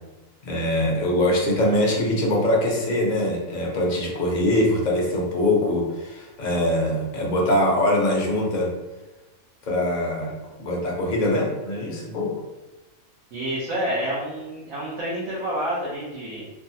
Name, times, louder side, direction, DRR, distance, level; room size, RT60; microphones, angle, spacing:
voice 1, 0.4-8.7 9.6-10.3 10.6-12.3, left 1 dB, 45° left, -2 dB, 0.6 m, -23 dB
voice 2, 13.3-16.5, equal, 85° right, -8 dB, 1.2 m, -28 dB
3.4 x 2.0 x 2.7 m, 1.1 s
omnidirectional pair, 1.4 m